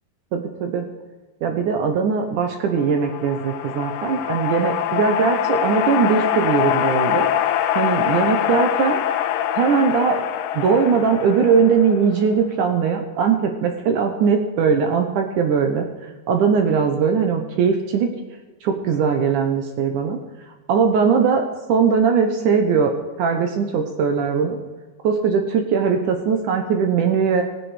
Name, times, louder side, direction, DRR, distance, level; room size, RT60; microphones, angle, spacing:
voice 1, 0.3-0.8 1.4-7.3 7.8-9.0 9.6-10.2 10.5-15.9 16.3-18.1 18.6-20.2 20.7-22.9 23.2-24.6 25.0-27.4, right 6 dB, 70° right, 5 dB, 2.0 m, -20 dB
sound 1, 2.8-12.3, left 11 dB, 80° left, 2.1 m, -24 dB
18.0 x 8.0 x 5.0 m, 1.3 s
omnidirectional pair, 4.6 m